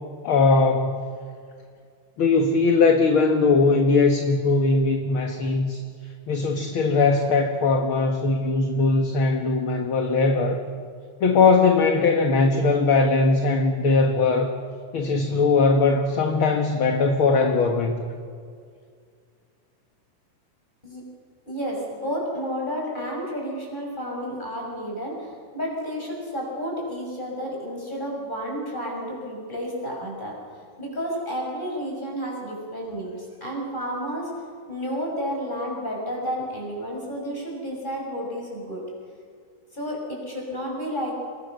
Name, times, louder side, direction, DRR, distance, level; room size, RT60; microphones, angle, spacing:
voice 1, 0.2-0.9 2.2-5.8 6.3-10.6 11.2-14.6 14.9-18.0, left 3 dB, 50° left, 4 dB, 2.0 m, -20 dB
voice 2, 21.5-30.4 30.8-34.4 34.7-38.8 39.7-41.2, equal, 15° left, -1 dB, 6.9 m, -31 dB
28.5 x 22.0 x 6.5 m, 2.2 s
omnidirectional pair, 3.6 m